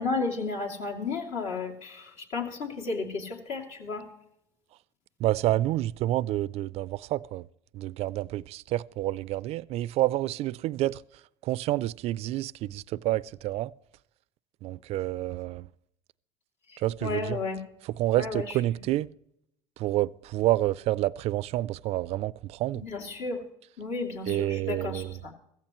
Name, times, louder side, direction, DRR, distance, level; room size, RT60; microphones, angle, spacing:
voice 1, 0.0-4.1 16.7-17.6 18.2-18.6 22.7-23.4 23.8-25.3, left 4 dB, 60° left, 2.6 m, -33 dB
voice 2, 5.2-7.4 7.7-11.0 11.4-13.7 14.6-15.7 16.8-17.4 18.0-19.1 19.8-22.8 24.3-25.1, right 15 dB, 55° right, 0.4 m, -28 dB
15.0 x 15.0 x 3.0 m
supercardioid pair, 100°, 13 cm